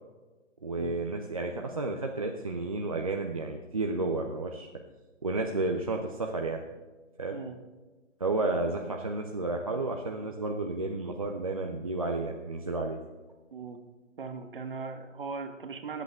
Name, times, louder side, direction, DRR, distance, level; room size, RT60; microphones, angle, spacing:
voice 1, 0.6-4.7 5.2-6.6 7.2-7.4 8.2-13.0, right 2 dB, 30° right, 1 dB, 0.5 m, -31 dB
voice 2, 14.2-16.0, right 5 dB, 45° right, 6 dB, 1.3 m, -39 dB
19.5 x 8.1 x 3.5 m, 1.2 s
figure-of-eight pair, 155°, 37 cm